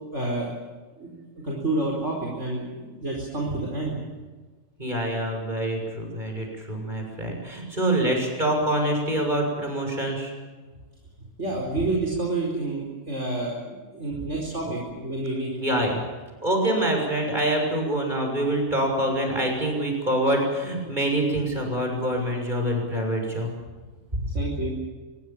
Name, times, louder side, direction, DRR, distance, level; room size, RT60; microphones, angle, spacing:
voice 1, 0.1-0.5 1.0-1.1 1.4-4.0 11.4-15.5 24.1-24.7, right 2 dB, 65° right, -1 dB, 4.9 m, -29 dB
voice 2, 4.8-10.3 15.6-16.0 16.4-23.5, right 1 dB, 35° right, 2 dB, 6.9 m, -25 dB
25.0 x 22.5 x 7.5 m, 1.3 s
omnidirectional pair, 1.4 m